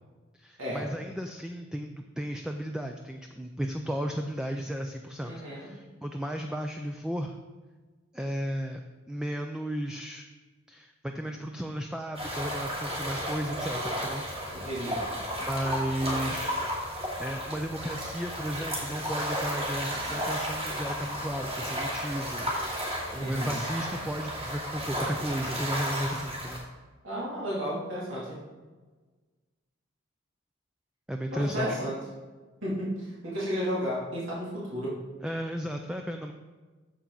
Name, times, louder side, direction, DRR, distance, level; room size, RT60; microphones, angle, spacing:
voice 1, 0.4-7.4 8.1-8.8 9.1-10.3 10.7-14.3 15.4-16.6 17.2-22.5 22.8-26.7 31.1-31.8 35.2-36.3, equal, 5° right, 4 dB, 0.4 m, -34 dB
voice 2, 5.2-5.7 14.5-15.0 23.1-23.6 27.0-28.4 31.3-32.0 32.6-35.0, equal, 65° right, -7 dB, 2.7 m, -33 dB
sound 1, 12.1-26.6, equal, 30° right, 2.5 m, -33 dB
8.8 x 7.1 x 3.9 m, 1.3 s
head